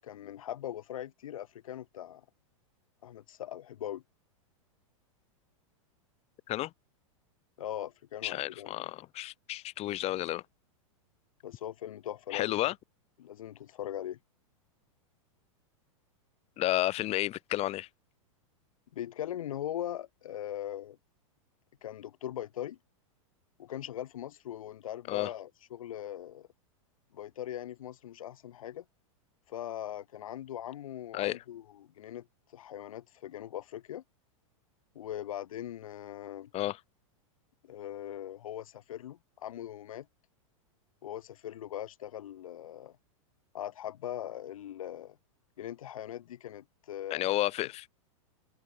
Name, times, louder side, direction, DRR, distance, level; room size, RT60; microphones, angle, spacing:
voice 1, 0.0-2.2 3.0-4.0 7.6-8.7 11.4-12.7 13.2-14.2 18.9-21.0 21.8-22.8 23.6-26.5 27.1-28.8 29.5-32.3 32.5-34.0 34.9-36.5 37.6-40.1 41.0-43.0 43.5-45.2 45.6-47.3, left 11 dB, 75° left, 7.9 m, -40 dB
voice 2, 8.2-10.4 12.3-12.7 16.6-17.9 25.1-25.3 31.1-31.4 36.5-36.8 47.1-47.9, left 15 dB, 35° left, 7.8 m, -31 dB
hypercardioid pair, 125°, 18 cm